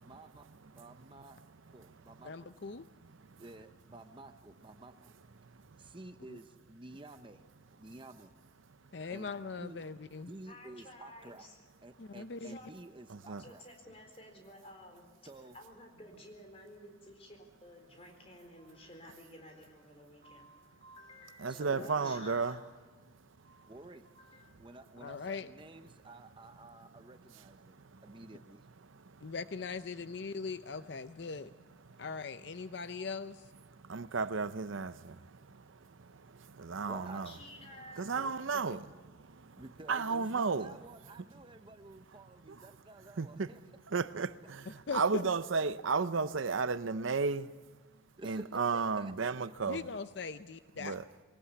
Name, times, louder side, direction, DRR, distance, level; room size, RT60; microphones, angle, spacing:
voice 1, 0.0-1.4 1.7-2.5 3.4-5.1 5.8-7.4 7.8-8.3 9.1-9.9 10.3-11.5 11.8-13.6 15.2-15.5 21.5-22.2 23.7-24.1 24.6-27.8 28.0-28.7 36.9-37.2 39.6-43.6 48.2-49.3, right 2 dB, 25° right, 0.7 m, -51 dB
voice 2, 2.2-2.9 6.3-6.4 8.9-10.3 12.0-12.6 21.8-21.9 25.0-25.5 29.2-31.5 32.0-33.5 38.1-38.6 44.9-45.2 49.7-51.0, left 4 dB, 60° left, 0.6 m, -40 dB
voice 3, 10.5-11.6 12.4-12.7 13.4-15.0 15.5-22.6 23.4-23.8 24.1-24.4 37.2-38.1, left 1 dB, 30° left, 4.1 m, -53 dB
voice 4, 13.1-13.4 21.4-22.5 33.9-35.1 36.6-37.3 38.0-38.8 39.9-40.7 43.2-43.5 43.9-44.6 44.9-47.5 48.2-49.8 50.8-51.0, right 4 dB, 80° right, 0.7 m, -33 dB
22.5 x 18.5 x 8.4 m
head